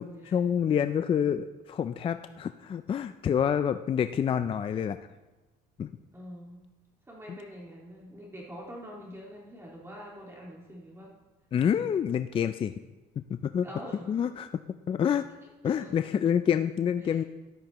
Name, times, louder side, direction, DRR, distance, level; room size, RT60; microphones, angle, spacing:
voice 1, 0.0-5.0 5.8-5.9 7.3-7.4 11.5-12.7 13.2-13.7 14.1-14.5 14.9-15.3 15.6-17.2, left 8 dB, 35° left, 10 dB, 0.4 m, -27 dB
voice 2, 6.1-6.7 7.1-11.1 13.6-14.1 15.6-15.9 17.0-17.2, equal, 15° right, -3 dB, 2.0 m, -45 dB
13.5 x 11.5 x 3.0 m, 1.1 s
cardioid pair, 110°, 17 cm